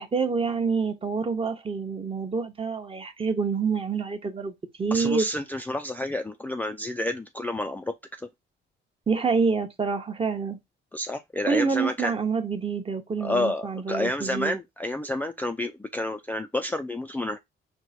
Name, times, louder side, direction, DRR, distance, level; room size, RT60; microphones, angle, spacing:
voice 1, 0.0-4.5 4.8-5.3 9.1-10.6 11.4-14.6, right 5 dB, 30° right, 0.9 m, -27 dB
voice 2, 4.9-7.9 10.9-12.1 13.2-17.4, left 1 dB, 10° left, 0.3 m, -29 dB
4.5 x 2.2 x 4.1 m
cardioid pair, 90°, 20 cm